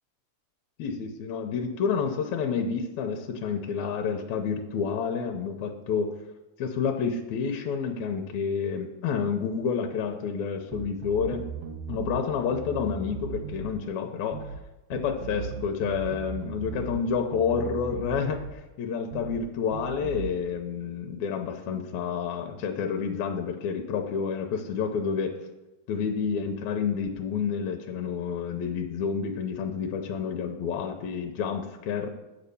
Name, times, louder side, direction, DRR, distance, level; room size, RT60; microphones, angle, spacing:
voice 1, 0.8-6.1 6.6-11.5 11.9-14.5 14.9-25.4 25.9-32.1, left 6 dB, 80° left, 4 dB, 2.0 m, -29 dB
sound 1, 10.7-12.2 12.5-13.8 14.3-14.6 14.9-17.0 17.3-18.6 19.1-19.4 19.7-20.3, right 6 dB, 70° right, 1.6 m, -37 dB
8.7 x 5.4 x 6.9 m, 1.1 s
omnidirectional pair, 3.4 m